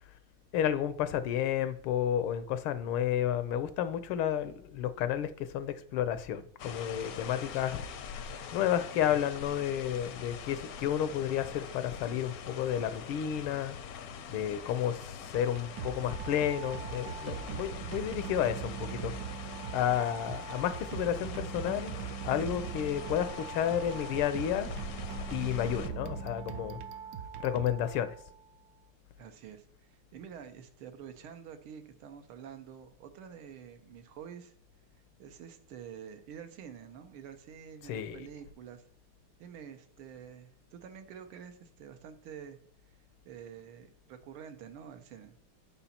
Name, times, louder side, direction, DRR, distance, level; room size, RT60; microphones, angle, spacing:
voice 1, 0.5-7.8 8.5-13.8 14.3-19.1 19.7-24.7 25.3-26.8 27.4-28.1 37.9-38.2, left 10 dB, 85° left, 1.6 m, -31 dB
sound 1, 6.6-25.9, left 7 dB, 65° left, 0.9 m, -44 dB
sound 2, 15.3-28.4, right 8 dB, 70° right, 1.0 m, -41 dB
voice 2, 29.2-34.5 35.2-38.8 39.4-42.6 43.3-45.3, right 8 dB, 85° right, 1.8 m, -48 dB
9.2 x 5.6 x 4.2 m
omnidirectional pair, 2.3 m